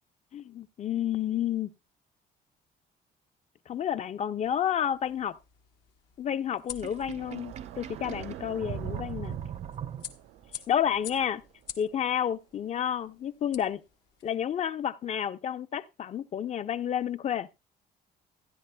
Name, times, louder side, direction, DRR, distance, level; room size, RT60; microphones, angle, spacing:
voice 1, 0.3-1.7 3.7-5.4 6.2-9.4 10.7-11.4 11.8-13.8 14.2-17.5, left 9 dB, 40° left, 0.6 m, -30 dB
sound 1, 4.4-14.4, left 9 dB, 80° left, 1.4 m, -49 dB
Sink (filling or washing), 6.7-10.5, right 9 dB, 40° right, 0.5 m, -39 dB
sound 2, 7.0-12.1, right 14 dB, 85° right, 0.5 m, -47 dB
15.5 x 10.5 x 2.2 m
cardioid pair, 110°, 17 cm